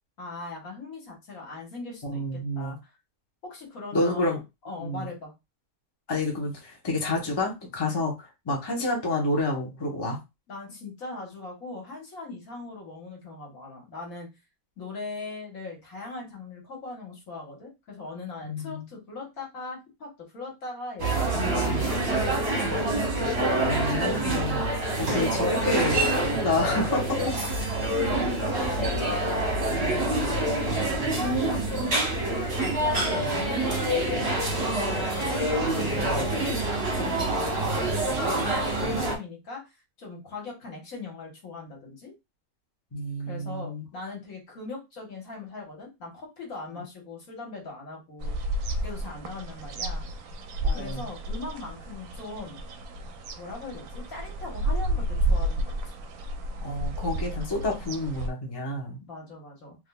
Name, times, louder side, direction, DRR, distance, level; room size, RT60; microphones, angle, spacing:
voice 1, 0.2-2.9 3.4-4.4 4.7-5.3 10.5-14.3 14.8-22.9 27.2-27.6 28.4-29.4 29.7-30.1 30.6-35.4 35.7-42.1 43.2-48.4 48.8-50.1 50.7-52.6 53.4-55.8 59.0-59.8, left 3 dB, 70° left, -1 dB, 1.8 m, -40 dB
voice 2, 2.0-2.8 3.9-4.4 4.8-5.1 6.1-10.2 18.4-18.9 21.3-21.8 23.6-27.2 38.8-39.0 42.9-43.8 50.6-51.0 56.6-59.0, left 2 dB, 20° left, -1 dB, 0.9 m, -29 dB
sound 1, 21.0-39.2, right 1 dB, 45° right, 1.1 m, -26 dB
sound 2, 48.2-58.3, right 1 dB, 70° right, 1.0 m, -31 dB
3.7 x 3.1 x 2.3 m, 0.23 s
omnidirectional pair, 1.6 m